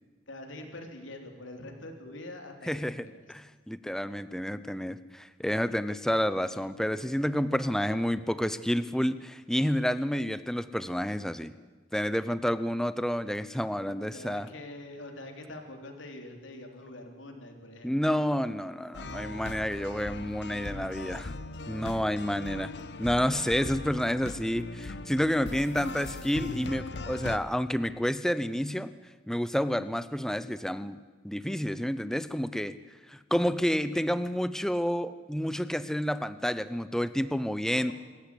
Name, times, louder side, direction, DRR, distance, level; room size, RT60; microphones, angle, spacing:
voice 1, 0.3-3.2 14.0-18.2 37.7-37.9, left 1 dB, 85° left, 4 dB, 3.3 m, -44 dB
voice 2, 2.7-11.5 11.9-14.5 17.8-21.3 21.7-22.7 23.0-28.9 29.3-31.0 31.2-32.8 33.1-37.9, equal, 5° left, 14 dB, 0.6 m, -29 dB
sound 1, 18.9-27.4, left 2 dB, 65° left, 0.9 m, -39 dB
26.0 x 14.0 x 8.4 m, 1.4 s
head